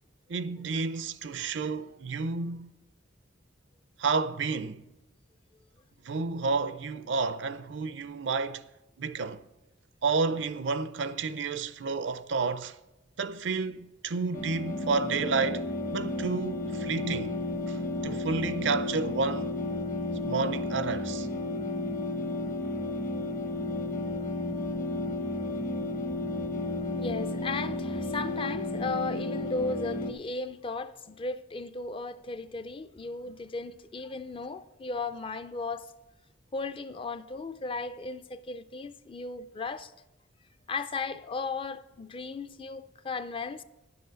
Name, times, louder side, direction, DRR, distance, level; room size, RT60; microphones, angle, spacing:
voice 1, 0.3-2.7 4.0-4.8 6.0-8.6 9.0-9.4 10.0-12.8 13.2-17.3 17.7-19.5 20.2-21.3, right 4 dB, 70° right, 0.5 m, -30 dB
sound 1, 14.3-30.1, left 2 dB, 45° left, 0.9 m, -32 dB
voice 2, 26.9-35.9 36.5-39.9 40.7-43.6, left 3 dB, 30° left, 0.4 m, -36 dB
10.5 x 6.9 x 6.3 m
head